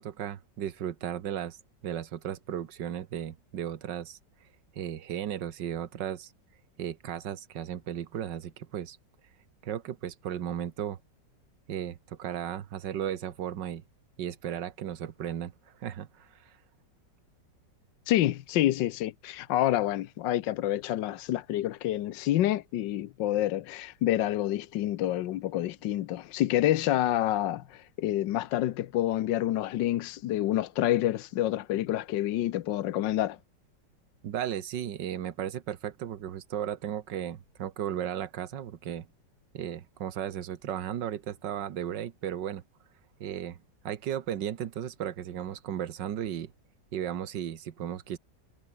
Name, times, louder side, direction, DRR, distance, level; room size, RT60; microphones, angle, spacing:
voice 1, 0.0-1.6 1.8-4.2 4.7-6.3 6.8-9.0 9.6-11.0 11.7-13.8 14.2-15.5 15.8-16.5 34.2-39.1 39.5-42.6 43.2-43.6 43.9-46.5 46.9-48.2, right 10 dB, 80° right, 1.8 m, -35 dB
voice 2, 18.1-33.4, left 13 dB, 85° left, 1.4 m, -28 dB
omnidirectional pair, 1.9 m